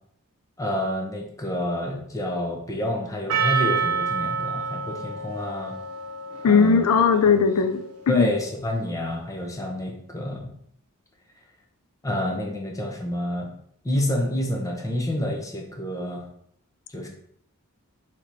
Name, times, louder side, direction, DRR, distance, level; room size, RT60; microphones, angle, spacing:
voice 1, 0.6-5.8 6.4-6.9 8.1-10.5 12.0-13.5 13.8-16.3 16.9-17.1, left 1 dB, 15° left, 0 dB, 0.8 m, -28 dB
Percussion, 3.3-7.8, right 5 dB, 80° right, 0.7 m, -28 dB
voice 2, 6.4-8.3, left 5 dB, 80° left, 8 dB, 0.4 m, -19 dB
4.0 x 3.0 x 4.5 m, 0.67 s
head